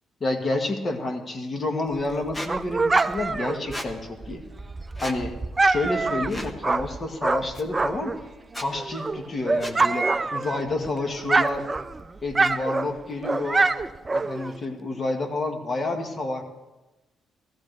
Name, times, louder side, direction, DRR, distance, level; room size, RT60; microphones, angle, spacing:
voice 1, 0.2-4.4 5.0-5.3 5.6-8.1 8.5-11.7 12.2-13.7 14.1-16.4, left 2 dB, 35° left, 4 dB, 1.7 m, -29 dB
Dog, 1.9-8.2 8.6-10.9 11.1-14.6, right 3 dB, 25° right, 0.4 m, -25 dB
Squeak, 2.3-2.5 3.7-3.9 5.0-5.2 6.3-6.6 7.5-7.6 8.5-8.7 9.6-9.8, equal, 15° left, 1.1 m, -34 dB
16.0 x 14.0 x 3.4 m, 1.1 s
cardioid pair, 90°, 0 cm